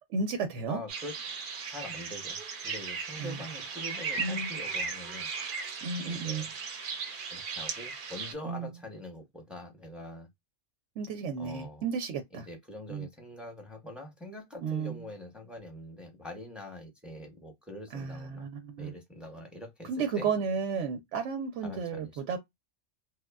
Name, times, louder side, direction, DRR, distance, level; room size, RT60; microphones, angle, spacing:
voice 1, 0.1-0.8 3.2-3.4 4.2-4.5 5.8-6.4 8.4-8.7 11.0-12.5 12.9-13.1 14.6-14.9 17.9-18.9 19.9-22.4, right 5 dB, 85° right, 0.9 m, -33 dB
voice 2, 0.7-1.1 1.7-2.4 2.6-5.3 6.0-6.5 7.3-10.3 11.4-11.8 12.3-18.5 18.8-20.3 21.6-22.2, left 1 dB, ahead, 0.7 m, -44 dB
sound 1, 0.9-8.3, right 5 dB, 55° right, 0.7 m, -37 dB
3.1 x 2.1 x 2.3 m
omnidirectional pair, 1.2 m